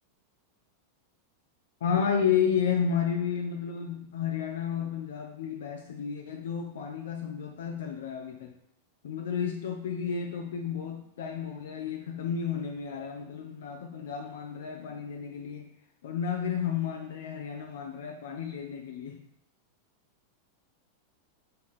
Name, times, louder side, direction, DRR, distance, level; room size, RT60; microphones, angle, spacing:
voice 1, 1.8-8.5 9.0-15.7 16.0-19.2, left 7 dB, 60° left, 3 dB, 0.6 m, -32 dB
6.4 x 3.6 x 4.3 m, 0.78 s
figure-of-eight pair, 90°, 0 cm